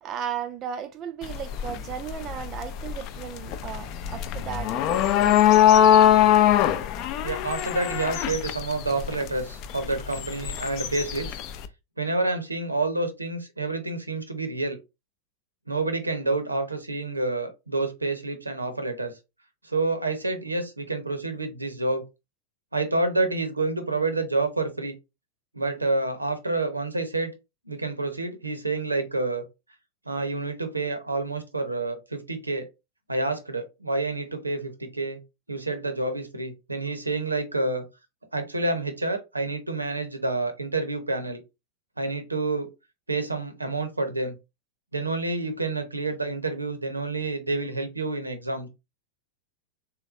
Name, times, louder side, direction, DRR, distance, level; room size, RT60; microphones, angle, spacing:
voice 1, 0.0-5.4, right 8 dB, 30° right, 0.4 m, -35 dB
sound 1, 1.2-11.7, left 10 dB, 40° left, 0.4 m, -22 dB
voice 2, 7.2-11.4 12.0-14.8 15.7-19.1 19.6-22.0 22.7-24.9 25.5-27.3 27.7-29.5 30.1-32.7 33.1-35.2 35.5-37.9 38.3-41.4 42.0-42.7 43.1-44.3 44.9-48.7, right 2 dB, 85° right, 0.7 m, -28 dB
3.4 x 3.0 x 2.4 m
figure-of-eight pair, 90°, 0 cm